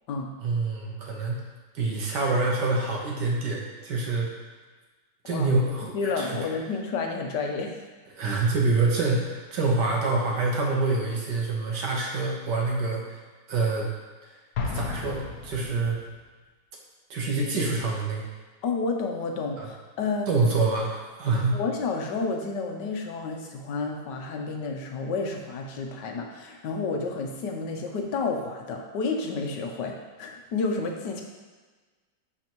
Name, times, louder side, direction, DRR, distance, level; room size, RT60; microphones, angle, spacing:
voice 1, 0.4-1.4 1.8-4.3 5.3-6.4 8.2-13.2 13.5-13.9 14.7-16.0 17.1-18.2 19.6-19.7 20.3-21.6, right 3 dB, 70° right, -1 dB, 1.7 m, -26 dB
voice 2, 5.9-7.7 18.6-20.3 21.4-31.2, left 4 dB, 75° left, 2 dB, 1.4 m, -30 dB
Explosion, 14.6-16.1, left 4 dB, 60° left, 1.2 m, -33 dB
10.5 x 4.3 x 3.0 m, 1.3 s
omnidirectional pair, 1.9 m